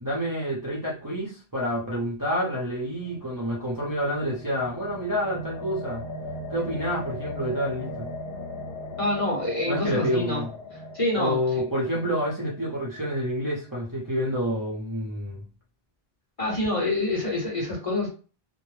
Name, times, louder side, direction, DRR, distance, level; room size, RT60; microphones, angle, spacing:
voice 1, 0.0-6.0 6.5-8.1 9.7-10.5 11.1-15.4, equal, 25° right, 0.7 m, -28 dB
sound 1, 3.1-13.2, left 1 dB, 80° left, 0.8 m, -38 dB
voice 2, 9.0-10.4 10.9-11.6 16.4-18.1, left 2 dB, 35° left, 0.9 m, -26 dB
2.2 x 2.1 x 3.1 m
omnidirectional pair, 1.0 m